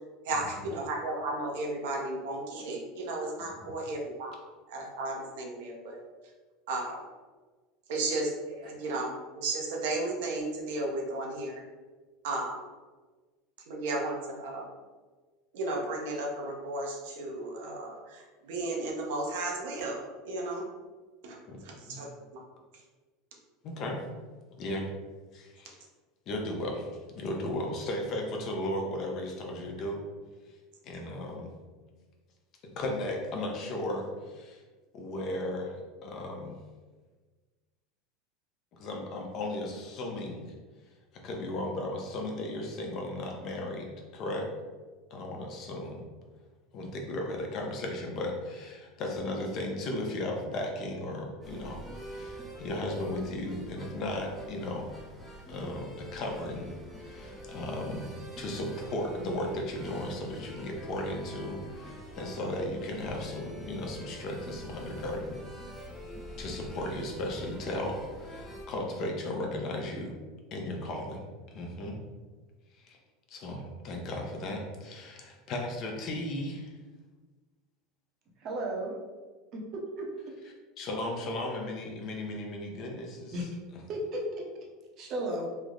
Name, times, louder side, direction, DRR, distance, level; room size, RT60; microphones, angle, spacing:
voice 1, 0.2-4.4 4.7-6.0 6.7-7.0 7.9-11.6 12.2-12.6 13.7-14.7 15.5-20.0 20.2-20.6 21.2-21.4 21.6-22.1 22.3-22.4, right 2 dB, 80° right, -1 dB, 0.7 m, -34 dB
voice 2, 21.5-22.0 23.6-24.0 24.6-24.9 25.3-25.7 26.3-26.9 27.1-30.0 30.8-31.5 32.6-34.6 34.9-36.5 38.8-40.4 41.2-44.5 45.1-46.0 46.7-54.9 55.5-56.7 57.0-65.4 65.9-66.0 66.4-70.1 70.5-71.2 71.5-72.0 72.8-73.0 73.3-76.7 80.8-83.4, left 1 dB, 45° left, 1 dB, 0.6 m, -35 dB
sound 1, 51.4-68.6, equal, 5° right, 0.6 m, -45 dB
voice 3, 78.4-79.0 79.5-80.1 83.3-83.5 83.9-84.5 85.0-85.5, right 1 dB, 40° right, 0 dB, 0.7 m, -34 dB
3.2 x 2.0 x 3.7 m, 1.3 s
supercardioid pair, 140°, 0 cm